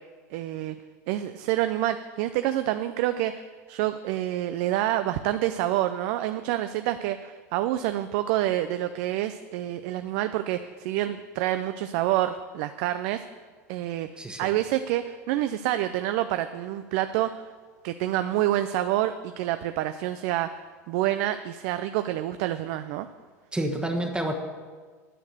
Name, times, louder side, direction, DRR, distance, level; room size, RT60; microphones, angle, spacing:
voice 1, 0.3-0.8 1.1-3.4 3.7-13.2 13.7-14.1 14.4-17.4 17.8-20.5 20.9-23.1, right 13 dB, 60° right, 10 dB, 0.5 m, -27 dB
voice 2, 14.2-14.5 23.5-24.3, right 1 dB, 10° right, 2 dB, 1.3 m, -29 dB
10.0 x 6.6 x 7.8 m, 1.5 s
hypercardioid pair, 90°, 9 cm